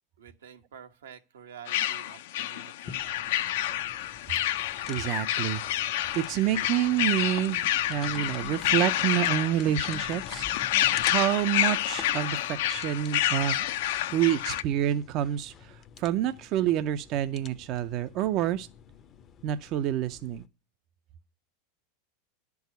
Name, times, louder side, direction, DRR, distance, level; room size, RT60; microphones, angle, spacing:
voice 1, 0.2-3.4, right 8 dB, 90° right, 1.1 m, -49 dB
sound 1, 1.7-14.6, left 13 dB, 75° left, 0.6 m, -29 dB
sound 2, 2.9-20.5, left 8 dB, 35° left, 0.6 m, -48 dB
voice 2, 4.9-5.6 5.9-7.6 7.9-10.5 11.0-13.7 14.1-18.7 19.4-20.4, right 12 dB, 45° right, 0.5 m, -28 dB
10.0 x 4.7 x 8.0 m
supercardioid pair, 120°, 0 cm